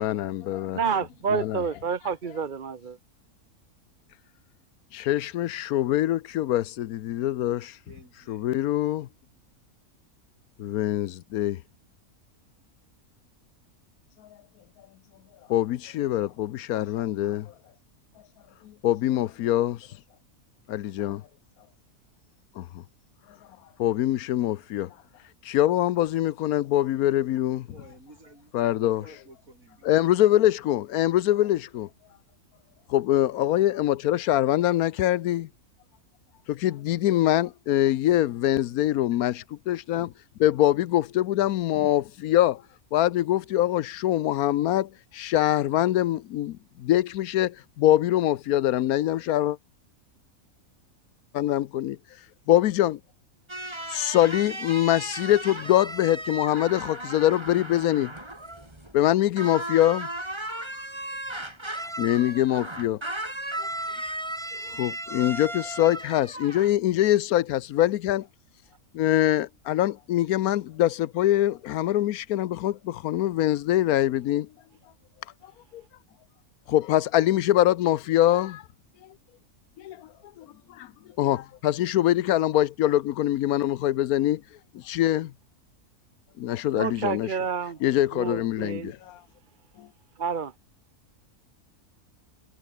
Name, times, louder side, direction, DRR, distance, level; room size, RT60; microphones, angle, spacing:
voice 1, 0.0-0.8 1.3-1.6 4.9-7.8 8.3-9.1 10.6-11.6 15.5-17.5 18.6-19.8 20.7-21.2 22.6-22.8 23.8-24.9 25.4-27.7 28.5-29.0 29.8-31.9 32.9-35.5 36.5-40.1 40.4-42.6 42.9-49.6 51.3-52.0 52.5-53.0 53.9-58.1 58.9-60.1 60.5-60.7 62.0-63.0 63.6-63.7 63.9-64.2 64.6-68.3 68.9-74.5 75.7-75.8 76.7-78.6 79.8-80.1 80.4-80.9 81.2-84.4 84.7-85.3 86.4-87.3 87.8-89.2 89.8-89.9, left 13 dB, 80° left, 1.1 m, -24 dB
voice 2, 0.7-3.0 86.7-87.8 88.1-88.9 90.2-90.5, right 6 dB, 40° right, 0.9 m, -29 dB
voice 3, 7.9-8.4 27.7-29.9, right 2 dB, 65° right, 7.3 m, -51 dB
sound 1, 53.5-59.1 59.4-66.7, right 1 dB, 20° right, 3.4 m, -36 dB
omnidirectional pair, 1.6 m